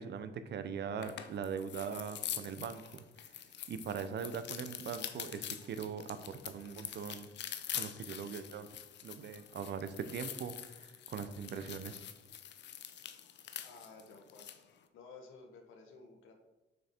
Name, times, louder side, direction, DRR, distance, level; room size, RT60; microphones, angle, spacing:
voice 1, 0.0-3.3 3.7-7.3 7.7-8.7 9.0-12.0, right 6 dB, 60° right, 11 dB, 0.7 m, -41 dB
sound 1, 1.0-14.6, left 10 dB, 60° left, 0.7 m, -45 dB
voice 2, 13.6-14.6 14.9-16.3, left 4 dB, 90° left, 4 dB, 1.4 m, -54 dB
6.1 x 6.0 x 4.3 m, 1.1 s
cardioid pair, 90°, 20 cm